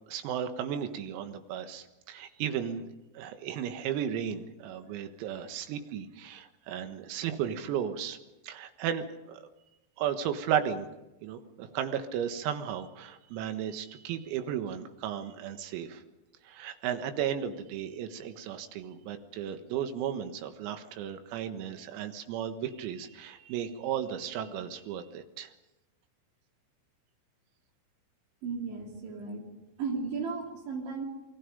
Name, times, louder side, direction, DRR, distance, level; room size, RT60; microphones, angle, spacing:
voice 1, 0.1-2.9 3.2-8.2 8.4-9.5 10.0-10.9 11.2-16.0 16.5-25.5, right 9 dB, 90° right, 8 dB, 4.2 m, -34 dB
voice 2, 28.4-29.5 29.8-31.1, right 4 dB, 65° right, 2 dB, 5.0 m, -35 dB
28.5 x 22.0 x 5.3 m, 0.98 s
omnidirectional pair, 6.0 m